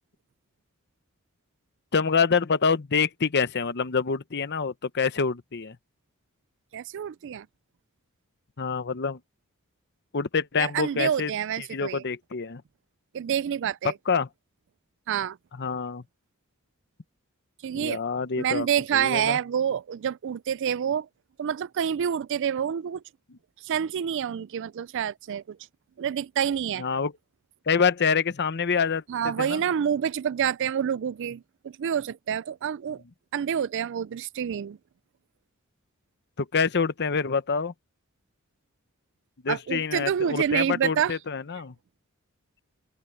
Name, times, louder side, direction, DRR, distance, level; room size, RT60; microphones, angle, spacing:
voice 1, 1.9-5.8 8.6-9.2 10.1-11.3 11.6-12.6 14.1-14.3 15.6-16.0 17.7-18.7 18.9-19.4 26.8-27.1 27.7-29.6 36.4-37.7 39.4-41.7, left 5 dB, 50° left, 0.8 m, -26 dB
voice 2, 6.7-7.5 10.6-12.0 13.1-13.9 15.1-15.4 17.6-18.0 18.4-21.1 21.4-23.0 23.6-25.6 26.0-26.8 29.1-33.0 33.3-34.8 39.5-41.2, right 8 dB, 60° right, 0.4 m, -27 dB
head